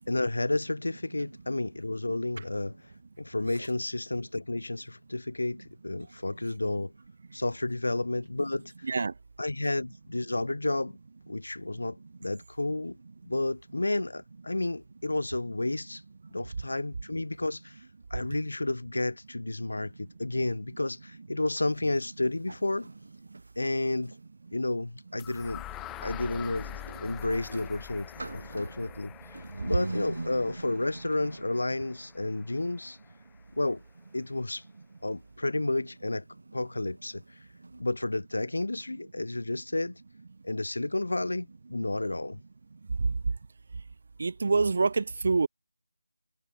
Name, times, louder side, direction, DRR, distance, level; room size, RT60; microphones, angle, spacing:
voice 1, 0.1-2.8 3.2-6.9 7.3-8.9 9.4-11.0 11.3-13.0 13.2-16.0 16.3-17.8 18.1-22.9 23.6-24.1 24.5-25.6 26.0-26.7 27.0-33.0 33.6-33.8 34.1-34.6 35.0-36.2 36.5-37.2 37.8-40.0 40.4-42.4, left 2 dB, 85° left, 0.5 m, -31 dB
sound 1, 21.4-24.2 25.1-37.8, right 2 dB, 75° right, 2.8 m, -45 dB
sound 2, 25.2-33.1, left 16 dB, 5° left, 1.3 m, -45 dB
voice 2, 44.2-45.5, right 4 dB, 35° right, 0.5 m, -25 dB
figure-of-eight pair, 175°, 0 cm